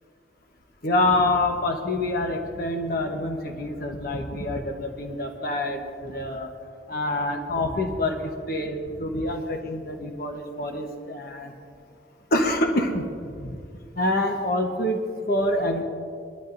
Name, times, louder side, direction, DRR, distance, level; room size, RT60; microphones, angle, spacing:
voice 1, 0.8-6.5 6.9-8.2 8.5-11.5 12.3-13.1 13.4-13.6 14.0-15.8, left 1 dB, 55° left, 3 dB, 1.1 m, -26 dB
22.5 x 12.5 x 2.6 m, 2.3 s
head